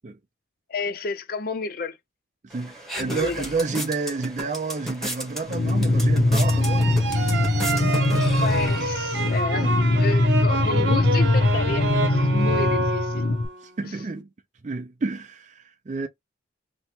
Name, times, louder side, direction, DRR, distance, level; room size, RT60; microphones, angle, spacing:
voice 1, 0.7-2.0 2.9-3.5 8.4-9.7 10.0-13.2 13.8-13.9, left 3 dB, 50° left, 0.5 m, -31 dB
voice 2, 2.4-7.4 9.5-9.7 13.6-14.3 14.6-16.1, right 3 dB, 40° right, 0.4 m, -30 dB
sound 1, 2.5-9.4, right 1 dB, ahead, 1.1 m, -35 dB
sound 2, 5.5-13.5, left 2 dB, 80° left, 0.9 m, -22 dB
sound 3, 6.4-13.6, right 2 dB, 65° right, 0.7 m, -28 dB
3.3 x 2.9 x 2.8 m
head